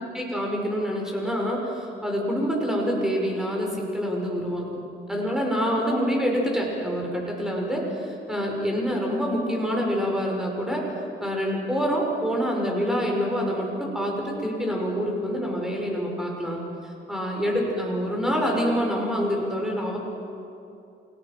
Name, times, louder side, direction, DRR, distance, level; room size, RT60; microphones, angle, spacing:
voice 1, 0.0-4.7 5.1-10.9 11.2-13.7 13.9-16.6 17.1-20.0, equal, 5° right, -1 dB, 5.9 m, -26 dB
28.5 x 18.5 x 6.1 m, 2.7 s
cardioid pair, 90°, 20 cm